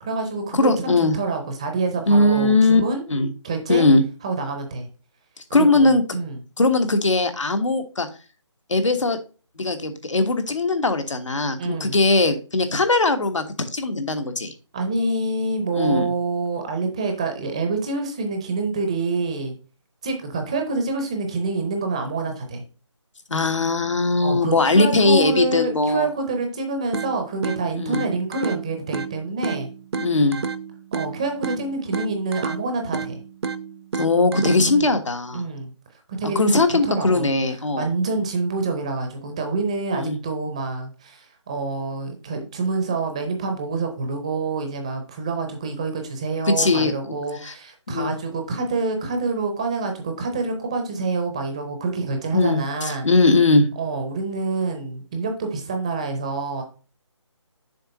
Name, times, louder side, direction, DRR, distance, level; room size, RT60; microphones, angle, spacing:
voice 1, 0.0-3.1 3.4-3.9 4.2-4.9 5.6-6.4 11.6-12.0 14.7-19.5 20.0-22.6 24.2-29.7 30.9-33.2 34.7-34.9 35.3-35.7 36.2-37.4 37.8-53.1 53.8-56.6, right 3 dB, 15° right, 5 dB, 0.5 m, -27 dB
voice 2, 0.5-1.1 2.1-2.8 3.1-3.3 3.7-4.0 5.5-6.0 6.6-8.1 8.7-9.2 9.6-13.4 13.7-14.5 15.7-16.1 23.3-26.1 27.7-28.0 30.0-30.4 34.0-35.4 36.3-37.9 39.9-40.2 46.6-47.1 47.4-47.5 47.9-48.1 52.3-53.7, left 2 dB, 85° left, 7 dB, 1.4 m, -19 dB
sound 1, 26.9-34.9, right 5 dB, 60° right, 0.6 m, -31 dB
6.9 x 3.8 x 5.2 m, 0.35 s
figure-of-eight pair, 165°, 16 cm